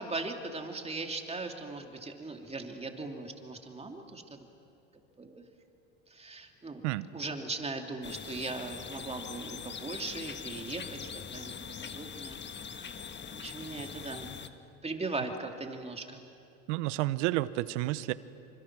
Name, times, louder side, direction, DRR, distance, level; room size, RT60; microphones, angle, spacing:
voice 1, 0.0-4.4 5.2-5.4 6.1-6.8 7.1-12.4 12.7-12.9 13.3-14.3 14.8-16.2, right 3 dB, 15° right, 3 dB, 2.8 m, -39 dB
sound 1, 8.0-14.5, left 7 dB, 30° left, 1.4 m, -42 dB
voice 2, 16.7-18.1, right 17 dB, 80° right, 16 dB, 1.0 m, -30 dB
27.0 x 25.0 x 6.2 m, 2.7 s
supercardioid pair, 95°, 36 cm